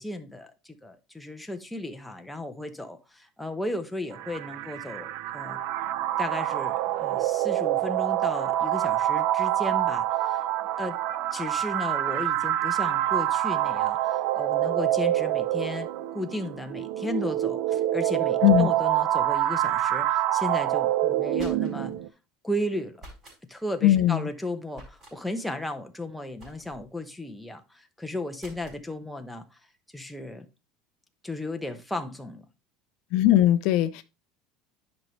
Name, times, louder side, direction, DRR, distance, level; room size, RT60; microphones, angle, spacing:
voice 1, 0.0-5.6 6.2-10.4 10.8-11.0 11.3-21.9 22.4-23.0 23.5-29.6 29.9-30.5 31.2-32.4, left 1 dB, ahead, 0.8 m, -35 dB
sound 1, 4.1-22.1, right 13 dB, 60° right, 0.6 m, -26 dB
sound 2, 21.1-22.0 23.0-23.4 24.7-25.2 26.4-26.9 28.4-28.8, right 1 dB, 25° right, 4.5 m, -48 dB
voice 2, 23.8-24.3 33.1-34.0, left 13 dB, 55° left, 0.5 m, -20 dB
10.5 x 5.2 x 3.2 m
cardioid pair, 165°, 0 cm